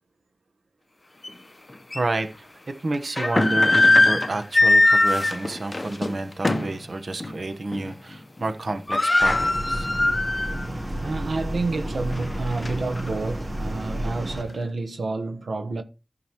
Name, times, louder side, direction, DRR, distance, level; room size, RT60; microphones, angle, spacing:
sound 1, 1.2-1.3 1.9-2.0 2.9-6.8 7.2-7.4 7.7-8.1 8.4-8.5 8.7-10.6 11.0-11.1 11.8-13.1, left 2 dB, 35° left, 0.9 m, -21 dB
voice 1, 1.9-2.5 2.8-9.9, right 2 dB, 60° right, 1.2 m, -30 dB
sound 2, 9.2-14.4, right 1 dB, 35° right, 4.0 m, -31 dB
voice 2, 11.0-15.8, right 3 dB, 85° right, 1.2 m, -29 dB
14.0 x 6.1 x 3.1 m
wide cardioid pair, 80°, 0 cm